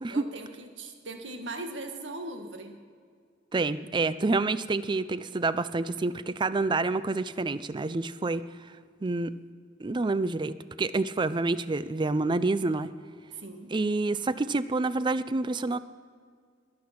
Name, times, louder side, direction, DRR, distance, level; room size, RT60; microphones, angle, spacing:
voice 1, 0.1-2.7 13.3-13.7, right 2 dB, 85° right, 5 dB, 1.7 m, -39 dB
voice 2, 3.5-8.7 9.0-9.4 9.8-12.9 13.7-15.8, right 3 dB, 25° right, 15 dB, 0.4 m, -28 dB
21.0 x 8.6 x 5.9 m, 2.1 s
head